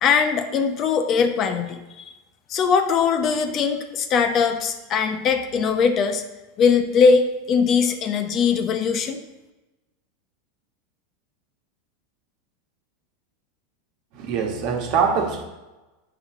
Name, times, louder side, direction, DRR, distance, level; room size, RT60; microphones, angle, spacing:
voice 1, 0.0-2.1 2.5-6.2 6.6-9.2, left 5 dB, 40° left, 0.8 m, -21 dB
voice 2, 14.1-15.4, right 6 dB, 55° right, 1.3 m, -23 dB
8.1 x 5.9 x 3.7 m
hypercardioid pair, 95°, 0 cm